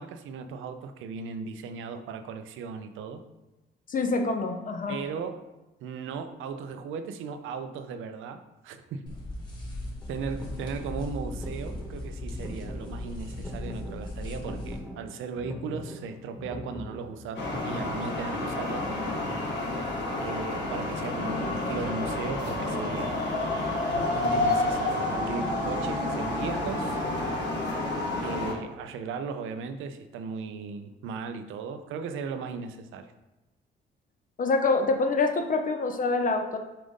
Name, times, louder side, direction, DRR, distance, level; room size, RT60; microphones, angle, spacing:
voice 1, 0.0-3.2 4.9-5.4 5.8-9.0 10.1-18.8 20.2-23.4 23.9-27.0 28.2-33.1, right 5 dB, 85° right, 9 dB, 0.6 m, -37 dB
voice 2, 3.9-5.0 34.4-36.6, left 3 dB, 40° left, 4 dB, 0.6 m, -26 dB
sound 1, 9.1-14.8, left 1 dB, 20° left, 2.2 m, -38 dB
sound 2, 10.0-18.1, left 1 dB, 5° left, 1.3 m, -41 dB
sound 3, 17.4-28.5, left 2 dB, 65° left, 1.4 m, -29 dB
7.4 x 2.6 x 5.2 m, 1.0 s
cardioid pair, 90°, 20 cm